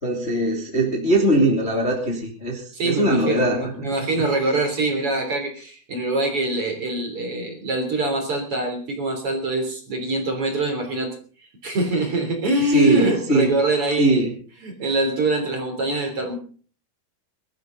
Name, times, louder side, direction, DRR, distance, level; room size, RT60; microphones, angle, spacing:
voice 1, 0.0-4.2 12.7-13.5 14.0-14.3, right 1 dB, 20° left, 0 dB, 2.4 m, -21 dB
voice 2, 2.7-11.1 11.6-14.2 14.6-16.4, right 2 dB, 35° right, 4 dB, 4.0 m, -24 dB
23.0 x 12.5 x 4.0 m, 0.41 s
omnidirectional pair, 4.6 m